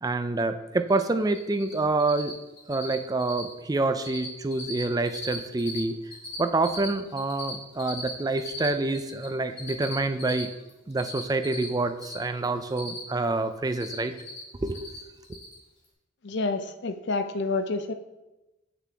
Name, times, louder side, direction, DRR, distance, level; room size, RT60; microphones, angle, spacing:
voice 1, 0.0-2.4 2.7-6.0 6.4-10.5 10.9-14.2 14.6-14.9 15.3-15.4, right 2 dB, 20° right, 9 dB, 0.4 m, -27 dB
Cricket, 0.9-1.7 2.0-2.3 2.6-2.9 3.2-3.5 3.7-4.3 4.5-5.8 6.0-9.3 9.6-12.1 12.4-13.2 13.5-14.4 14.7-15.0 15.2-15.5, left 3 dB, 30° left, 2.3 m, -39 dB
voice 2, 16.2-17.9, left 3 dB, 60° left, 9 dB, 0.5 m, -28 dB
7.5 x 6.0 x 3.4 m, 1.0 s
head